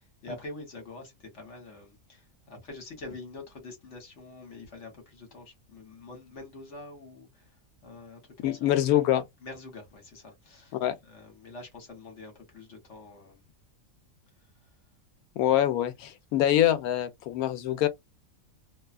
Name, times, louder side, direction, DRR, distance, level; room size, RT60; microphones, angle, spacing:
voice 1, 0.0-7.6 7.8-8.7 9.4-10.8 11.0-13.4, left 2 dB, 55° left, 1.4 m, -45 dB
voice 2, 8.4-9.2 10.7-10.9 15.4-17.9, left 12 dB, 85° left, 1.1 m, -25 dB
2.7 x 2.3 x 2.4 m
omnidirectional pair, 1.5 m